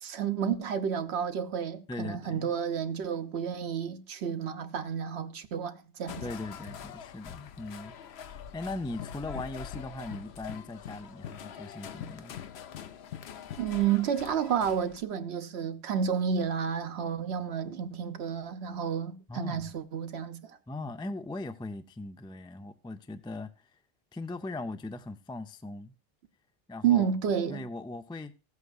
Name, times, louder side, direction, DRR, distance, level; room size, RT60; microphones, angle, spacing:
voice 1, 0.0-6.2 13.6-20.6 26.8-27.6, right 8 dB, 90° right, 1.1 m, -30 dB
voice 2, 1.9-2.5 6.2-7.9 8.3-12.3 19.3-19.7 20.7-23.7 24.1-25.9 26.7-27.1 27.5-28.3, left 2 dB, 10° left, 0.3 m, -39 dB
sound 1, 6.1-15.0, left 8 dB, 80° left, 0.9 m, -43 dB
15.5 x 8.2 x 2.4 m
omnidirectional pair, 1.1 m